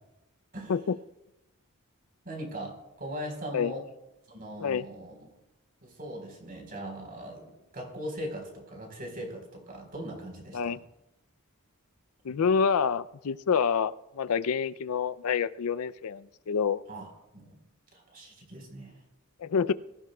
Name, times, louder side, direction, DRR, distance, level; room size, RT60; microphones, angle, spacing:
voice 1, 2.2-3.8 4.3-5.3 5.8-10.8 12.3-12.4 16.9-17.1 17.3-17.6 17.9-18.9, right 1 dB, 40° right, 2 dB, 4.2 m, -40 dB
voice 2, 12.2-16.8 19.4-19.7, left 6 dB, 80° left, 16 dB, 0.5 m, -27 dB
22.5 x 16.0 x 2.3 m, 0.94 s
head